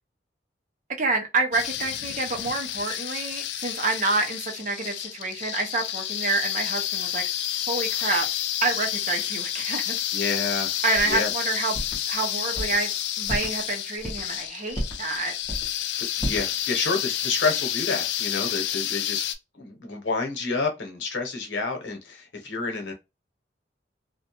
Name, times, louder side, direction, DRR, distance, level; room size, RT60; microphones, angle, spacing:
voice 1, 1.0-7.2 7.7-8.3 8.6-10.0 10.8-11.8 12.1-12.9 13.2-15.3, right 3 dB, 45° right, 0.6 m, -28 dB
sound 1, 1.5-19.4, left 11 dB, 70° left, 0.3 m, -30 dB
voice 2, 10.1-11.3 16.0-19.2 19.5-22.9, left 4 dB, 90° left, 0.8 m, -29 dB
sound 2, 10.9-11.2 11.7-12.0 12.5-12.8 13.2-13.5 14.0-14.3 14.7-15.1 15.4-15.7 16.2-16.5, equal, 20° left, 1.1 m, -31 dB
2.5 x 2.1 x 2.8 m
head